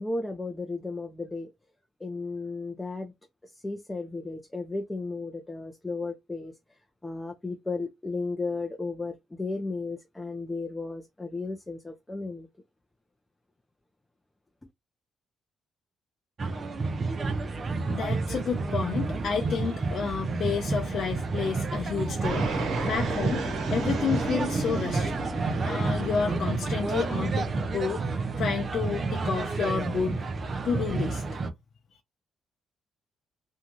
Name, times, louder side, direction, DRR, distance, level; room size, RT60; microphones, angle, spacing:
voice 1, 0.0-1.5 2.0-3.1 3.5-6.5 7.0-12.5, left 3 dB, 15° left, 0.5 m, -34 dB
sound 1, 16.4-31.5, right 3 dB, 40° right, 0.5 m, -30 dB
voice 2, 17.9-23.4 23.7-25.1 25.7-30.2 30.6-31.2, left 6 dB, 60° left, 0.5 m, -30 dB
Fixed-wing aircraft airplane, 22.2-27.6, right 3 dB, 75° right, 1.1 m, -33 dB
2.6 x 2.3 x 3.0 m
cardioid pair, 90°, 0 cm